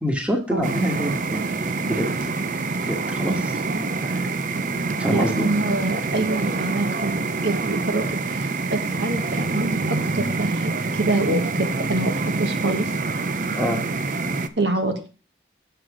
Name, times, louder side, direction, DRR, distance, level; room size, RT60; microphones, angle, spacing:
voice 1, 0.0-1.5 1.9-2.1 2.8-3.5 4.0-4.3 5.0-5.5 13.5-13.8, equal, 5° right, 3 dB, 1.4 m, -26 dB
sound 1, 0.6-14.5, right 3 dB, 45° right, 0.6 m, -26 dB
voice 2, 5.1-12.9 14.6-14.9, right 2 dB, 80° right, 5 dB, 1.7 m, -26 dB
7.9 x 7.3 x 4.9 m, 0.34 s
head